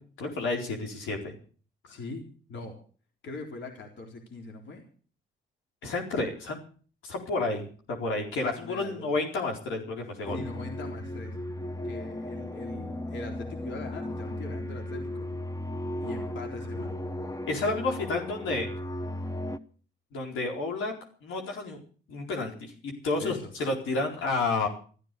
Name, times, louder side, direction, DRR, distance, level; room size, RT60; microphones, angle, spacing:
voice 1, 0.0-1.4 5.8-6.6 7.0-10.4 17.5-18.7 20.1-20.9 21.2-21.8 22.1-24.7, left 3 dB, 85° left, 1 dB, 4.4 m, -30 dB
voice 2, 1.8-2.2 2.5-2.8 3.2-4.8 8.6-9.2 10.3-11.4 11.8-15.3 16.0-17.0 23.2-23.5, left 3 dB, 65° left, 3 dB, 4.0 m, -41 dB
Psychotic Didgeridoo, 10.3-19.6, left 1 dB, 15° left, 1.0 m, -36 dB
14.0 x 14.0 x 6.8 m, 0.42 s
cardioid pair, 90°, 20 cm